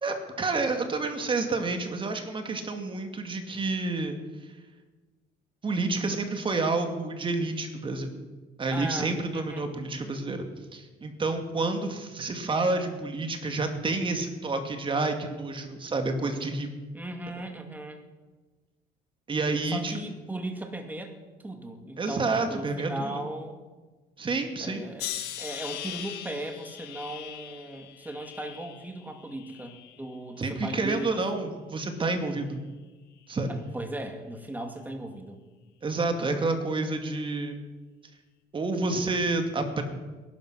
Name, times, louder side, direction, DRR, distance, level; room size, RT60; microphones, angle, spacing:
voice 1, 0.0-4.2 5.6-8.1 8.6-16.7 17.4-17.5 19.3-19.9 22.0-23.2 24.2-24.8 30.4-32.6 33.3-33.5 35.8-37.6 38.5-39.8, right 3 dB, 30° right, 6 dB, 2.4 m, -29 dB
voice 2, 8.7-9.7 16.9-18.0 19.6-21.2 21.4-23.6 24.6-25.1 25.4-31.5 33.5-35.4, right 1 dB, 10° right, 4 dB, 2.4 m, -37 dB
sound 1, 25.0-30.2 30.6-31.3 32.0-32.3, left 11 dB, 80° left, 1.6 m, -41 dB
19.5 x 11.5 x 6.3 m, 1.3 s
cardioid pair, 110°, 17 cm